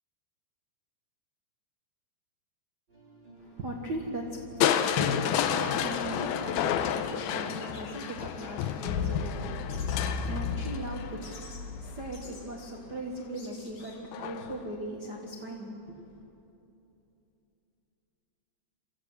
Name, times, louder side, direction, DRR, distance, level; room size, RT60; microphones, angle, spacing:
sound 1, 2.9-13.5, right 1 dB, 25° right, 5.5 m, -51 dB
voice 1, 3.4-16.1, right 1 dB, 60° right, 0 dB, 1.1 m, -39 dB
Crushing, 4.6-12.6 14.1-14.6 15.1-15.2, left 9 dB, 85° left, 2.7 m, -30 dB
sound 2, 6.4-6.5 6.8-7.3 7.5-8.7 9.7-10.1 11.2-11.6 12.1-12.4 13.1-13.2 13.4-14.0, left 3 dB, 50° left, 4.4 m, -50 dB
25.5 x 14.5 x 8.0 m, 2.9 s
omnidirectional pair, 4.5 m